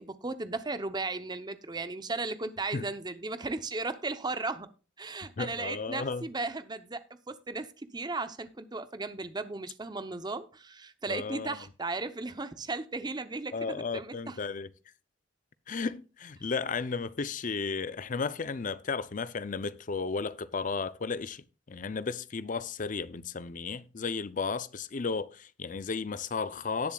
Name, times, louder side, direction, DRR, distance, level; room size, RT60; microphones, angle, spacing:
voice 1, 0.0-4.7 5.0-14.4, right 3 dB, 20° right, 0.7 m, -36 dB
voice 2, 5.4-6.3 11.1-11.6 13.5-14.7 15.7-26.9, left 4 dB, 40° left, 0.5 m, -34 dB
18.0 x 7.1 x 2.3 m
head